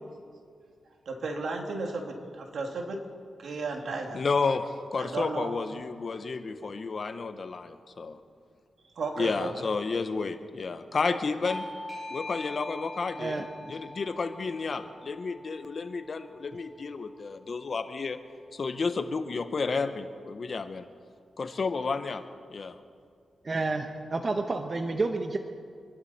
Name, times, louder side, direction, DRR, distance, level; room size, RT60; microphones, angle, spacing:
voice 1, 1.1-3.0 3.4-4.2 5.0-5.5 9.0-9.7, right 3 dB, 70° right, 2 dB, 2.4 m, -34 dB
voice 2, 4.1-4.6 4.9-8.2 9.2-11.6 12.1-18.2 18.5-20.8 21.4-22.2 22.5-22.8, left 4 dB, 50° left, 9 dB, 1.1 m, -31 dB
Bell / Doorbell, 11.4-16.6, left 1 dB, 5° right, 3.5 m, -42 dB
voice 3, 23.4-25.4, right 3 dB, 40° right, 5 dB, 1.0 m, -30 dB
26.0 x 12.0 x 4.4 m, 2.2 s
cardioid pair, 75°, 0 cm